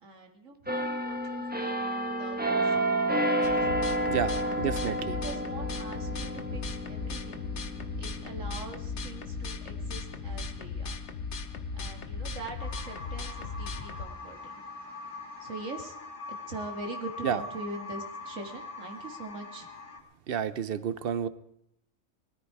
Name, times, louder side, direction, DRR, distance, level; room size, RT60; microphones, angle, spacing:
voice 1, 0.0-3.7 4.4-7.5 8.0-10.9 11.7-14.6 15.4-15.9 16.5-19.7, right 2 dB, 70° right, 3 dB, 2.4 m, -43 dB
sound 1, 0.7-12.2 12.6-12.9, right 1 dB, 10° right, 1.1 m, -32 dB
sound 2, 3.4-14.1, left 4 dB, 60° left, 1.2 m, -37 dB
voice 2, 4.1-5.2 17.2-17.4 20.3-21.3, right 8 dB, 50° right, 15 dB, 0.9 m, -30 dB
sound 3, 12.6-20.0, left 3 dB, 40° left, 2.2 m, -42 dB
19.5 x 13.5 x 4.8 m, 0.76 s
omnidirectional pair, 1.4 m